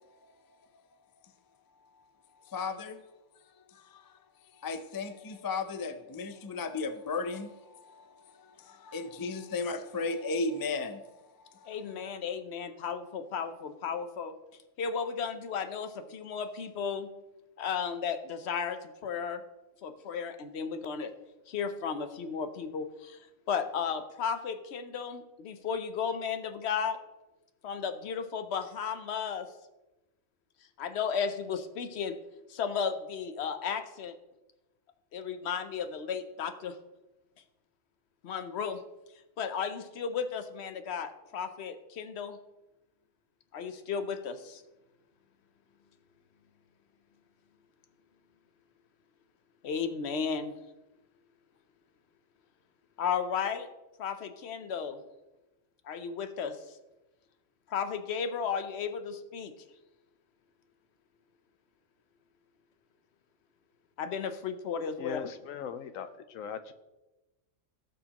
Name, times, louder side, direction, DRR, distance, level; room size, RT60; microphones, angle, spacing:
voice 1, 2.5-3.0 3.7-4.2 4.6-11.1 11.5-11.8, left 3 dB, 35° left, 9 dB, 0.3 m, -35 dB
voice 2, 11.7-14.3 14.8-17.1 17.6-19.4 19.8-21.1 21.5-27.0 27.6-29.5 30.8-32.2 32.5-34.1 35.1-36.7 38.2-38.8 39.4-42.4 43.5-44.6 49.6-50.5 53.0-53.7 54.0-55.0 55.8-56.6 57.7-59.5 64.0-65.2, left 6 dB, 60° left, 9 dB, 1.0 m, -34 dB
voice 3, 65.0-66.7, left 8 dB, 90° left, 11 dB, 1.1 m, -39 dB
17.0 x 6.5 x 2.9 m, 1.0 s
omnidirectional pair, 1.4 m